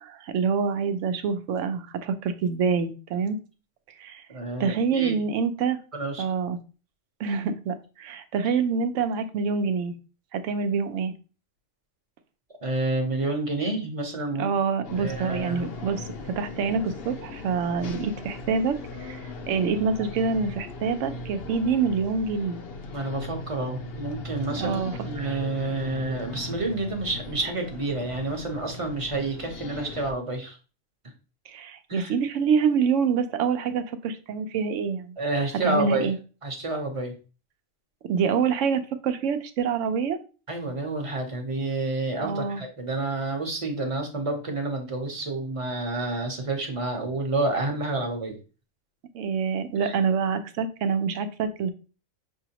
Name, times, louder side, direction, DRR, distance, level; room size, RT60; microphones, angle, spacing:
voice 1, 0.0-3.4 4.0-4.3 4.6-5.8 6.2-6.6 7.2-9.9 10.3-11.1 14.4-16.1 16.4-19.2 19.5-22.6 24.6-25.4 31.5-35.1 35.6-36.2 38.0-40.2 42.2-42.6 49.1-51.7, right 6 dB, 75° right, 9 dB, 0.9 m, -26 dB
voice 2, 4.3-5.2 5.9-6.2 12.6-14.5 15.0-15.6 22.9-30.6 31.9-32.1 35.2-36.1 36.4-37.1 40.5-48.4 49.8-50.0, right 2 dB, 30° right, 3 dB, 0.8 m, -29 dB
sound 1, 14.8-30.1, left 2 dB, 60° left, 0.8 m, -38 dB
5.8 x 2.7 x 2.8 m, 0.35 s
omnidirectional pair, 1.3 m